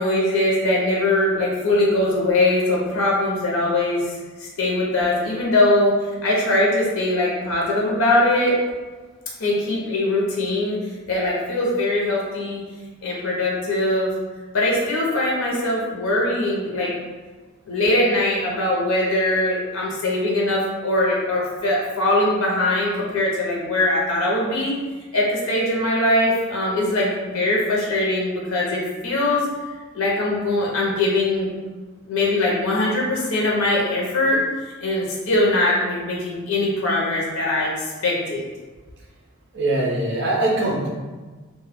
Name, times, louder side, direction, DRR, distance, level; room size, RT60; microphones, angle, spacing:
voice 1, 0.0-4.0 4.4-5.9 6.2-8.6 9.4-10.8 11.1-12.6 13.0-14.1 14.5-16.9 17.7-24.7 25.1-29.4 29.9-31.5 32.1-34.4 34.8-38.4, left 1 dB, 80° left, -3 dB, 0.6 m, -21 dB
voice 2, 39.5-40.9, right 2 dB, 55° right, -3 dB, 0.6 m, -22 dB
2.2 x 2.0 x 3.3 m, 1.3 s
head